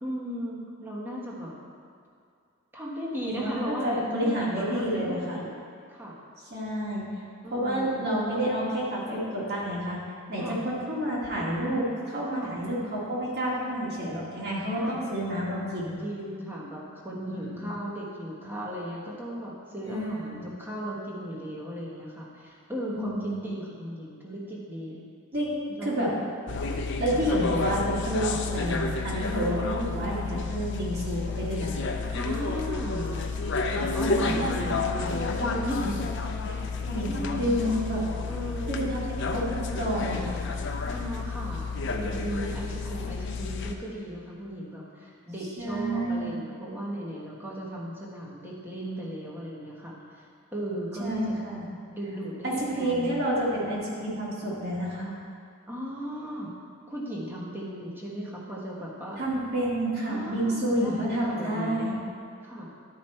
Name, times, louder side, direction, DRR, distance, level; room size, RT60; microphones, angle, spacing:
voice 1, 0.0-1.5 2.7-5.6 5.9-6.2 7.4-8.0 10.4-10.7 12.3-12.6 14.8-15.0 16.0-25.0 25.7-26.3 29.5-29.6 32.1-33.2 33.7-36.1 36.5-36.8 37.0-37.9 38.2-38.9 40.9-51.3 51.9-53.3 55.7-56.6 56.9-59.2 60.1-61.9 62.4-62.7, equal, 10° right, -5 dB, 1.2 m, -36 dB
voice 2, 3.2-5.4 6.5-10.0 10.3-16.0 17.3-17.7 19.9-20.5 22.9-23.4 25.3-25.6 25.8-26.1 26.7-31.8 34.0-34.7 36.9-38.0 38.7-40.4 45.6-46.3 51.0-51.7 52.4-55.1 59.2-62.0, equal, 50° right, -6 dB, 2.1 m, -29 dB
sound 1, 26.5-43.8, left 4 dB, 55° left, 0.6 m, -31 dB
11.5 x 5.1 x 4.4 m, 2.3 s
head